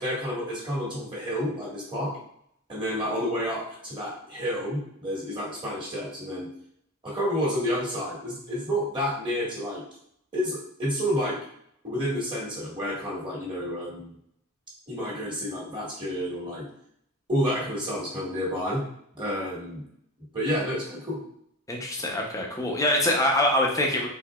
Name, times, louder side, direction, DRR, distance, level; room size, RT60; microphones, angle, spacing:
voice 1, 0.0-2.1 2.7-6.5 7.0-9.8 10.3-11.4 11.8-14.1 14.9-16.7 17.3-18.8 19.2-19.8 20.3-21.2, equal, 25° right, -5 dB, 1.8 m, -30 dB
voice 2, 21.7-24.1, left 1 dB, 15° left, 0 dB, 0.8 m, -24 dB
4.6 x 4.0 x 2.4 m, 0.71 s
head